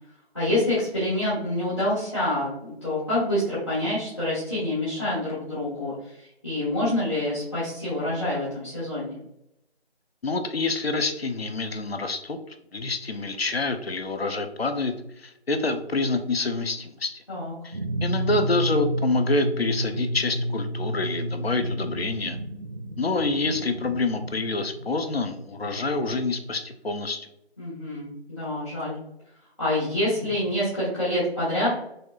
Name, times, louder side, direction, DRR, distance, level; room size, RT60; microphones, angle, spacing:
voice 1, 0.3-9.2 17.3-17.5 27.6-29.0 29.6-31.7, left 1 dB, 25° left, -13 dB, 1.3 m, -27 dB
voice 2, 10.2-12.4 12.7-17.1 17.6-22.4 23.0-27.3, left 3 dB, 65° left, 7 dB, 0.6 m, -27 dB
sound 1, 17.7-26.1, equal, 45° right, 0.4 m, -31 dB
4.2 x 3.2 x 2.3 m, 0.80 s
figure-of-eight pair, 165°, 33 cm